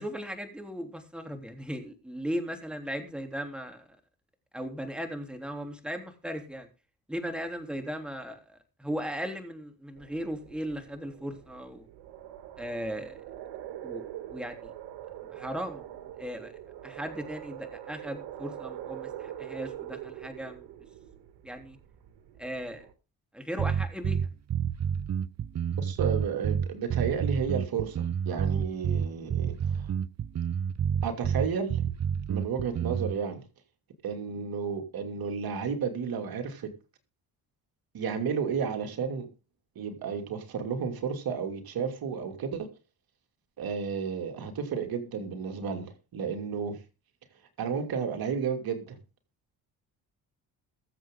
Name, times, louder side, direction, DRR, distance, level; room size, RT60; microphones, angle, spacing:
voice 1, 0.0-3.9 4.5-6.7 7.1-11.9 12.6-13.2 13.8-14.7 15.3-16.5 16.8-20.8 21.4-21.8 22.4-22.8 23.3-24.3, equal, ahead, 3.4 m, -37 dB
sound 1, 10.0-22.9, right 12 dB, 85° right, 1.9 m, -44 dB
sound 2, 23.6-33.2, right 8 dB, 45° right, 0.8 m, -29 dB
voice 2, 25.8-29.9 31.0-31.8 32.3-33.4 34.0-36.7 37.9-39.3 39.7-42.7 43.6-46.8 47.6-49.0, right 6 dB, 65° right, 2.8 m, -32 dB
21.5 x 7.7 x 3.8 m
supercardioid pair, 70°, 38 cm